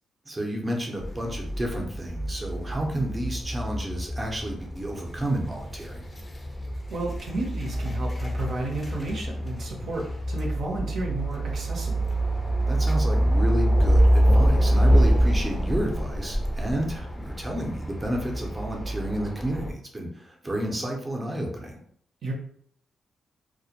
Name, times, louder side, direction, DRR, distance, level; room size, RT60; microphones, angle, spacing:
voice 1, 0.3-6.0 12.7-21.8, right 1 dB, 25° right, 0 dB, 0.6 m, -31 dB
sound 1, 1.0-19.7, right 1 dB, 30° left, 0.5 m, -25 dB
voice 2, 6.9-12.1 22.2-22.3, right 2 dB, 70° right, -1 dB, 0.6 m, -32 dB
2.1 x 2.1 x 2.8 m, 0.63 s
cardioid pair, 70°, 0 cm